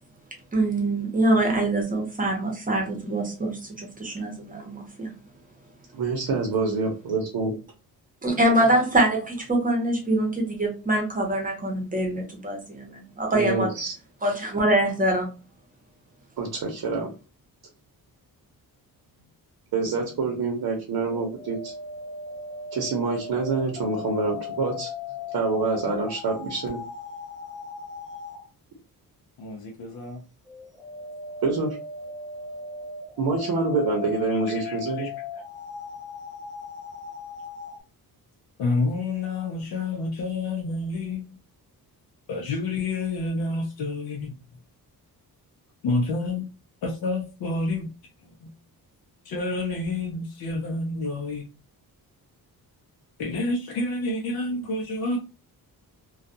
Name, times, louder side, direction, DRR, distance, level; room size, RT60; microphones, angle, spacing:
voice 1, 0.5-5.1 8.2-13.7 14.2-15.3, right 1 dB, 20° right, 0.8 m, -24 dB
voice 2, 5.9-7.5 13.3-13.9 16.4-17.1 19.7-21.7 22.7-24.9 25.3-26.8 31.4-31.8 33.2-35.1, right 4 dB, 75° right, 0.8 m, -26 dB
sound 1, 21.1-28.4 30.5-37.8, left 5 dB, ahead, 0.3 m, -37 dB
voice 3, 29.4-30.2 34.3-35.1 38.6-41.2 42.3-44.3 45.8-46.5 46.8-47.9 48.2-48.5 49.2-51.5 53.2-55.2, left 2 dB, 65° left, 0.6 m, -29 dB
2.3 x 2.3 x 2.6 m
wide cardioid pair, 145°, 39 cm